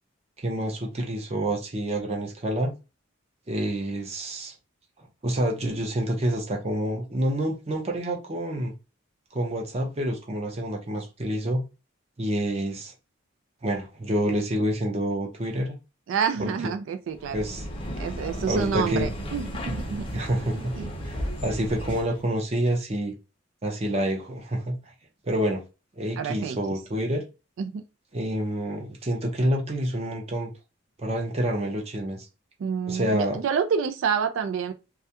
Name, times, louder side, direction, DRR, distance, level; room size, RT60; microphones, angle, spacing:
voice 1, 0.4-2.8 3.5-4.5 5.2-8.7 9.3-11.6 12.2-12.9 13.6-15.8 16.4-16.7 17.3-17.6 18.5-19.1 20.1-20.7 21.0-23.1 23.6-24.8 25.2-25.6 26.0-27.2 28.1-30.5 31.0-32.3 32.9-33.4, right 1 dB, 30° right, 0.6 m, -28 dB
voice 2, 16.1-17.4 18.0-20.1 20.5-20.9 26.2-26.6 27.6-27.8 32.6-34.7, right 6 dB, 70° right, 0.3 m, -28 dB
sound 1, 17.1-22.2, equal, 25° left, 0.5 m, -34 dB
2.3 x 2.1 x 2.7 m
head